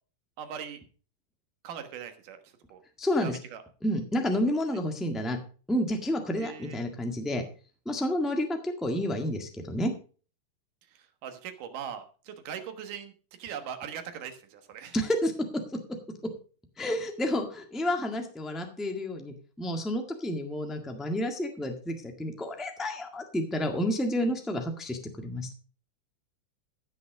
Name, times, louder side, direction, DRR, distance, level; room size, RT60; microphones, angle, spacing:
voice 1, 0.4-0.8 1.6-2.8 3.2-3.6 4.7-4.8 6.4-6.8 10.9-13.1 13.4-15.0, right 8 dB, 85° right, 7 dB, 3.0 m, -40 dB
voice 2, 3.0-3.4 3.8-5.4 5.7-7.4 7.8-9.9 14.9-15.3 16.8-25.5, left 1 dB, ahead, 4 dB, 0.5 m, -30 dB
15.0 x 6.5 x 5.0 m, 0.39 s
omnidirectional pair, 3.6 m